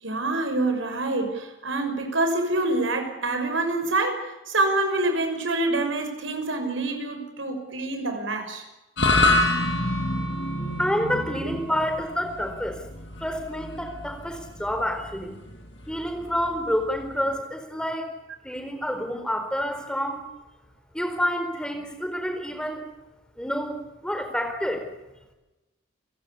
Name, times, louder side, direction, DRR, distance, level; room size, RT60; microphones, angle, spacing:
voice 1, 0.0-8.6, right 2 dB, 80° right, 6 dB, 6.0 m, -26 dB
sound 1, 9.0-17.4, left 2 dB, 60° left, 6.4 m, -27 dB
voice 2, 10.8-12.8 13.2-15.4 15.9-18.1 18.4-20.2 20.9-22.8 23.4-24.9, equal, 5° left, 5 dB, 4.3 m, -28 dB
29.5 x 17.0 x 8.5 m, 1.0 s
head